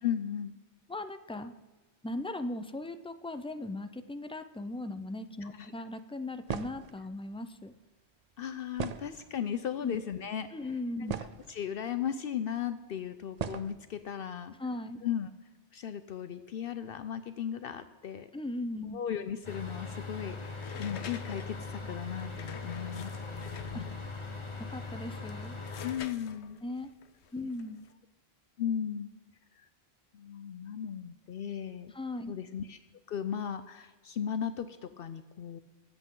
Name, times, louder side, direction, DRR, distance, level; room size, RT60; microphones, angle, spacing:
voice 1, 0.0-0.5 5.4-5.7 8.4-10.5 11.5-14.5 15.0-15.3 15.7-18.3 18.9-23.9 25.8-26.6 28.6-29.1 30.1-31.9 32.3-32.8 33.1-35.6, left 9 dB, 65° left, 11 dB, 0.7 m, -36 dB
voice 2, 0.9-1.5 2.0-7.7 9.8-10.0 10.5-11.2 14.6-15.0 18.3-19.0 23.7-23.9 24.7-25.6 26.6-26.9 27.3-27.8 31.9-32.3, left 2 dB, 10° left, 10 dB, 0.3 m, -38 dB
sound 1, 6.5-6.9 8.8-9.5 10.3-10.4 10.8-11.6 12.5-12.6 13.4-13.7, right 7 dB, 50° right, 0.5 m, -37 dB
sound 2, 19.4-25.9, left 3 dB, 30° left, 1.3 m, -41 dB
sound 3, 20.6-24.2 24.9-27.9, left 8 dB, 85° left, 1.0 m, -47 dB
22.5 x 7.9 x 3.8 m, 1.2 s
omnidirectional pair, 1.1 m